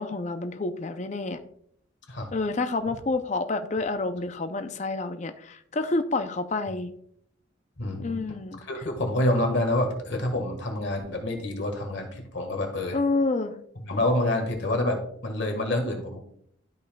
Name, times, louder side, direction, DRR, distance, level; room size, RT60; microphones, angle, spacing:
voice 1, 0.0-1.4 2.3-6.9 8.0-8.6 12.9-13.6, left 3 dB, 35° left, 8 dB, 0.4 m, -28 dB
voice 2, 7.8-8.2 8.6-13.0 13.8-16.2, left 1 dB, 60° left, 3 dB, 1.6 m, -27 dB
12.5 x 5.4 x 2.2 m, 0.67 s
head